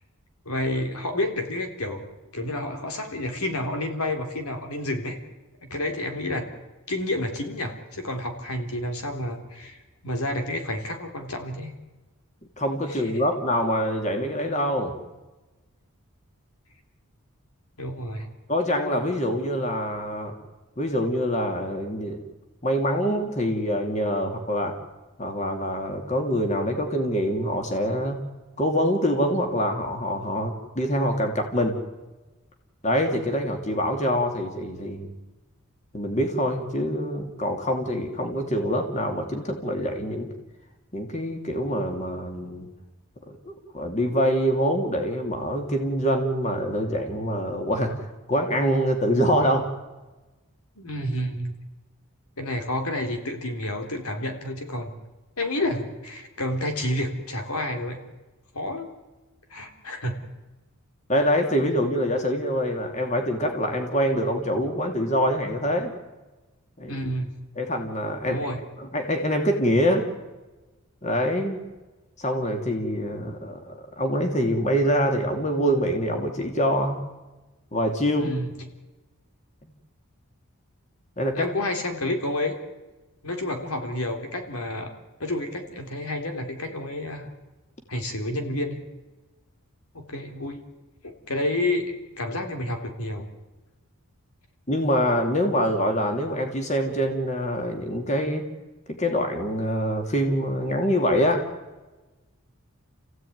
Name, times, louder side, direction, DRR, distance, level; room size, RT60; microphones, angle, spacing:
voice 1, 0.5-2.0 2.3-5.2 5.6-6.5 6.9-11.7 12.9-13.0 17.8-18.3 50.8-51.6 52.4-54.9 55.4-58.0 58.5-58.9 59.5-60.2 66.9-67.3 68.3-68.6 78.2-78.5 81.4-82.6 83.2-84.9 85.2-87.3 87.9-88.8 89.9-90.6 91.0-93.3, left 1 dB, 85° left, 5 dB, 3.6 m, -29 dB
voice 2, 12.6-14.9 18.5-20.3 20.8-22.2 22.6-24.8 25.2-28.2 28.6-31.8 32.8-35.1 35.9-40.3 40.9-42.7 43.3-47.9 48.3-49.7 61.1-65.9 66.8-67.0 67.6-70.0 71.0-71.6 72.2-77.0 77.7-78.4 81.2-81.5 94.7-98.4 98.9-101.4, equal, 30° left, 4 dB, 2.8 m, -25 dB
30.0 x 16.0 x 9.5 m, 1.2 s
head